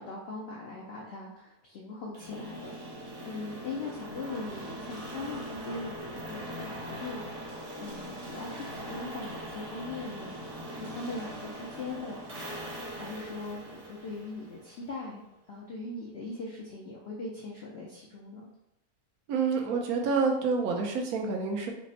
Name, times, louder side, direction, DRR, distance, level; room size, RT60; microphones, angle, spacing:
voice 1, 0.0-7.5 7.8-10.3 10.7-12.5 12.9-18.5, left 3 dB, 75° left, -2 dB, 0.5 m, -40 dB
sound 1, 2.1-15.0, right 1 dB, 40° right, 0.7 m, -41 dB
voice 2, 19.3-21.7, right 4 dB, 75° right, 1 dB, 1.0 m, -28 dB
3.3 x 2.0 x 3.9 m, 0.84 s
omnidirectional pair, 1.7 m